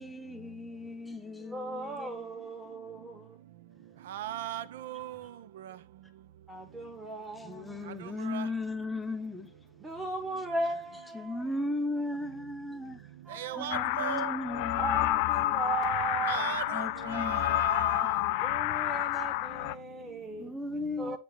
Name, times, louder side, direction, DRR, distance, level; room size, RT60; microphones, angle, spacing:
voice 1, 0.0-2.3 7.3-9.5 11.1-13.1 13.6-15.2 16.7-18.8 20.4-21.2, left 2 dB, 5° left, 0.9 m, -37 dB
voice 2, 1.5-3.3 6.5-7.8 9.8-11.4 13.3-13.8 14.8-16.5 18.4-20.5 21.0-21.2, right 2 dB, 10° right, 1.2 m, -37 dB
voice 3, 4.1-5.2 5.7-5.8 8.2-8.5 13.3-14.3 16.3-18.1, right 11 dB, 55° right, 0.5 m, -37 dB
sound 1, 13.7-19.7, left 17 dB, 45° left, 0.3 m, -29 dB
9.4 x 3.3 x 4.2 m
figure-of-eight pair, 90°, 0 cm